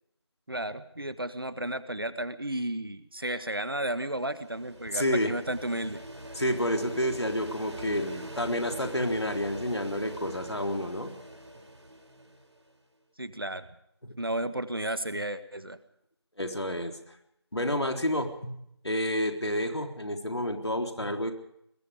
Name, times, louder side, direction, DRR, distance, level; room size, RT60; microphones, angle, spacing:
voice 1, 0.5-6.0 13.2-13.7 14.2-15.8, right 1 dB, 55° right, 12 dB, 1.6 m, -33 dB
sound 1, 3.9-12.7, right 1 dB, 85° right, 4.5 m, -43 dB
voice 2, 4.9-5.3 6.4-11.1 14.0-14.2 16.4-17.0 17.5-21.3, left 1 dB, 70° left, 4 dB, 3.8 m, -29 dB
24.0 x 21.5 x 5.1 m, 0.75 s
figure-of-eight pair, 180°, 14 cm